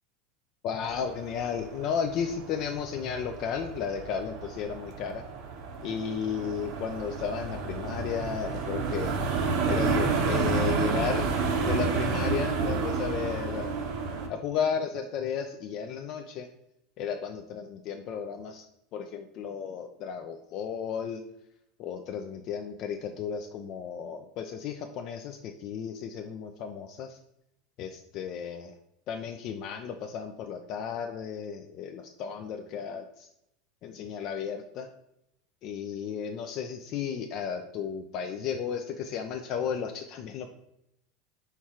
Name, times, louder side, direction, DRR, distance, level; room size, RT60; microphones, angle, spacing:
voice 1, 0.6-5.2 5.8-9.2 9.7-13.8 14.3-16.5 17.0-18.6 18.9-21.2 21.8-27.2 27.8-28.7 29.1-33.3 33.8-34.9 35.6-40.5, left 7 dB, 50° left, 5 dB, 0.4 m, -34 dB
sound 1, 0.8-14.3, right 4 dB, 65° right, 0.8 m, -30 dB
4.5 x 2.4 x 4.2 m, 0.80 s
supercardioid pair, 125°, 0 cm